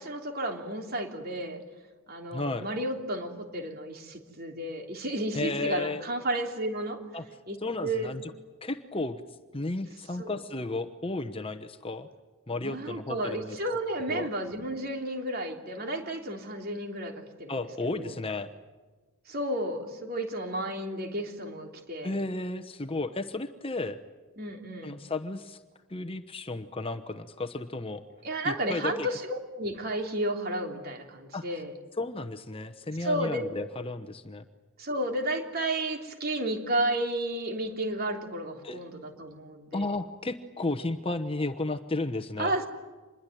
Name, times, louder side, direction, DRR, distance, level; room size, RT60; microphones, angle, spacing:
voice 1, 0.0-1.6 2.1-7.0 7.5-7.6 7.8-8.1 10.2-10.4 12.6-17.5 17.9-18.2 19.3-22.1 24.4-25.0 28.2-31.7 33.0-33.4 34.8-39.9 42.4-42.7, right 1 dB, 45° right, 4 dB, 3.3 m, -32 dB
voice 2, 2.3-2.7 5.3-6.0 7.1-7.2 7.6-8.3 8.6-9.2 9.5-12.1 12.5-13.6 14.1-14.3 17.5-18.5 22.0-24.0 24.8-25.6 25.9-28.0 28.4-29.1 31.3-31.5 32.0-34.4 38.6-38.8 39.7-42.5, left 2 dB, 25° left, 9 dB, 1.0 m, -33 dB
26.5 x 21.5 x 9.2 m, 1.3 s
head